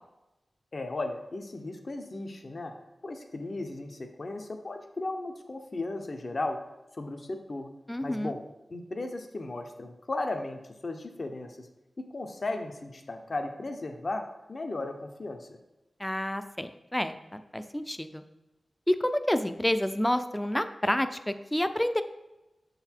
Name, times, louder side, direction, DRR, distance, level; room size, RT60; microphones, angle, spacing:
voice 1, 0.7-2.7 3.0-6.6 7.0-7.7 8.0-8.4 8.7-11.7 12.0-15.6, left 2 dB, 50° left, 5 dB, 0.7 m, -36 dB
voice 2, 7.9-8.3 16.0-18.2 18.9-22.0, left 1 dB, 10° left, 10 dB, 0.4 m, -29 dB
7.0 x 3.9 x 4.4 m, 1.0 s
wide cardioid pair, 80°, 0 cm